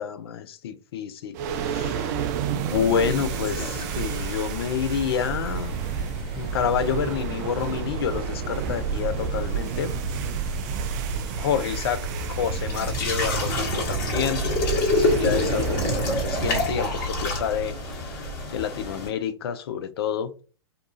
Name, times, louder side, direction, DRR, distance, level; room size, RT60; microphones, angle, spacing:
voice 1, 0.0-5.7 6.3-9.9 11.4-20.4, left 8 dB, 65° left, 0.4 m, -29 dB
sound 1, 1.3-18.7, right 6 dB, 40° right, 0.3 m, -30 dB
sound 2, 3.3-19.1, left 3 dB, 45° left, 1.2 m, -31 dB
2.6 x 2.3 x 2.6 m
hypercardioid pair, 115°, 14 cm